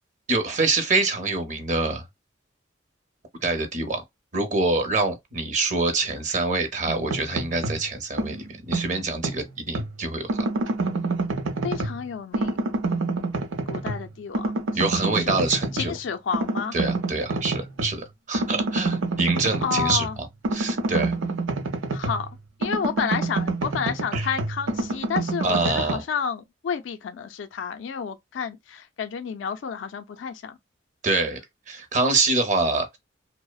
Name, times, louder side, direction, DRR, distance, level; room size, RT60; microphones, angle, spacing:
voice 1, 0.3-2.0 3.4-4.0 4.3-10.5 14.7-15.9 16.7-20.1 20.5-21.2 24.1-24.3 25.4-26.0 31.0-31.4 31.7-33.0, right 3 dB, 40° right, 0.6 m, -25 dB
sound 1, 6.9-7.9 8.2-9.9 10.3-12.0 12.3-14.1 14.3-15.9 16.3-18.0 18.3-22.3 22.6-25.9, right 3 dB, 85° right, 0.6 m, -28 dB
voice 2, 11.6-12.6 13.7-15.4 15.7-16.8 19.6-20.2 21.9-22.3 22.6-30.6, left 6 dB, 70° left, 0.4 m, -30 dB
2.7 x 2.0 x 2.3 m
head